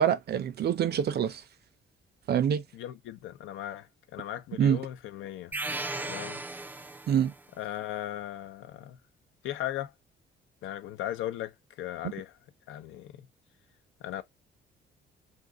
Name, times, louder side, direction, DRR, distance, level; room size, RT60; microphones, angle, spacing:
voice 1, 0.0-1.4 2.3-2.6 4.6-4.8 7.1-7.3, right 9 dB, 55° right, 0.6 m, -25 dB
voice 2, 2.7-5.6 6.0-6.4 7.6-9.0 9.4-9.9 10.6-12.4 12.7-13.3 14.0-14.2, left 12 dB, 90° left, 0.6 m, -37 dB
sound 1, 5.5-7.4, right 2 dB, 10° right, 0.3 m, -36 dB
2.6 x 2.5 x 3.5 m
cardioid pair, 90°, 20 cm